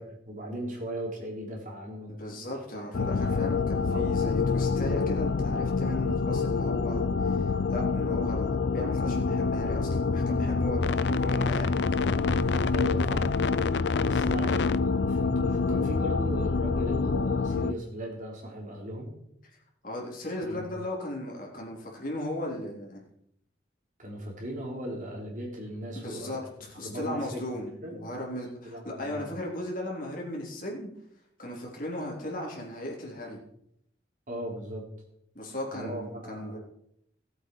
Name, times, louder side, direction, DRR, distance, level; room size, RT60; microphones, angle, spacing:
voice 1, 0.0-3.5 3.9-4.3 12.7-13.4 14.0-19.1 20.5-20.7 24.0-26.4 26.8-27.5 27.8-27.9 28.6-29.3 34.3-34.9 35.7-36.6, equal, 45° right, -1 dB, 3.5 m, -38 dB
voice 2, 2.2-11.8 14.2-14.3 19.8-23.0 25.9-30.9 31.4-33.4 35.4-36.6, left 1 dB, 50° left, -2 dB, 3.6 m, -36 dB
sound 1, 2.9-17.7, left 4 dB, 75° left, 0.5 m, -26 dB
18.5 x 8.0 x 4.7 m, 0.73 s
head